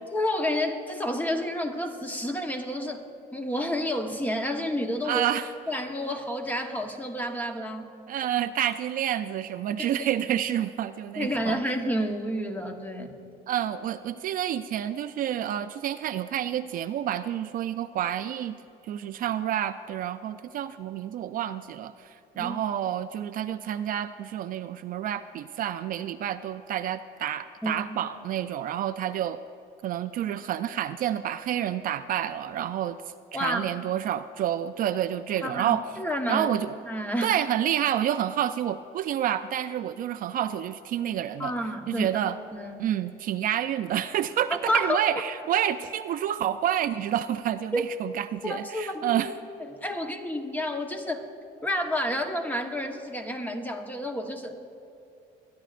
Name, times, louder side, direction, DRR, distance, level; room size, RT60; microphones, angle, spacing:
voice 1, 0.1-3.0 3.3-5.3 5.7-7.9 9.8-10.1 11.2-13.1 22.3-22.5 27.6-27.9 33.3-33.7 35.4-36.5 36.9-37.4 41.4-42.1 42.5-42.8 44.7-45.0 47.7-47.8 48.4-49.2 49.6-51.3 51.6-54.5, equal, 10° left, 4 dB, 1.1 m, -30 dB
voice 2, 5.0-5.5 8.1-11.6 13.5-18.6 18.8-29.4 29.8-33.0 33.3-35.9 36.3-36.7 37.2-41.5 41.9-42.4 42.8-49.3, right 11 dB, 55° right, 11 dB, 0.4 m, -29 dB
24.0 x 10.5 x 2.5 m, 2.7 s
cardioid pair, 110°, 17 cm